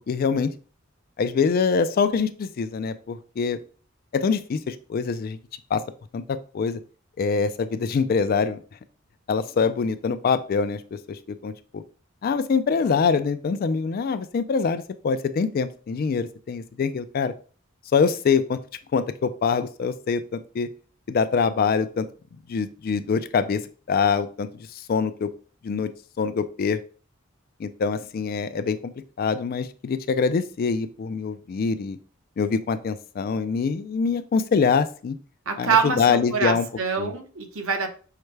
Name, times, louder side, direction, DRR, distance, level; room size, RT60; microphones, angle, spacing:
voice 1, 0.1-0.5 1.2-3.6 4.1-5.4 5.7-5.8 6.1-6.8 7.2-8.6 9.3-10.8 11.1-11.8 12.2-17.3 17.9-18.6 18.9-20.7 21.1-22.1 22.5-23.6 23.9-25.3 25.6-25.9 26.2-26.8 27.6-28.9 29.2-32.0 32.4-35.2 35.6-36.7 37.0-37.1, left 5 dB, 45° left, 12 dB, 0.3 m, -24 dB
voice 2, 35.5-37.9, right 6 dB, 85° right, 5 dB, 0.8 m, -25 dB
5.6 x 2.1 x 3.2 m, 0.39 s
head